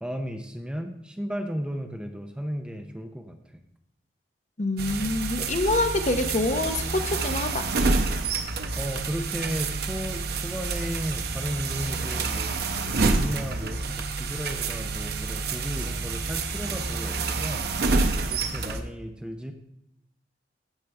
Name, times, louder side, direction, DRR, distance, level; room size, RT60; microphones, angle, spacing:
voice 1, 0.0-3.4 8.8-12.5 12.9-17.7 18.3-19.5, equal, 5° right, 5 dB, 0.6 m, -34 dB
voice 2, 4.6-7.7, left 2 dB, 45° left, 6 dB, 0.8 m, -26 dB
sound 1, 4.8-18.8, right 3 dB, 65° right, 0.8 m, -28 dB
14.5 x 5.1 x 3.3 m, 0.77 s
head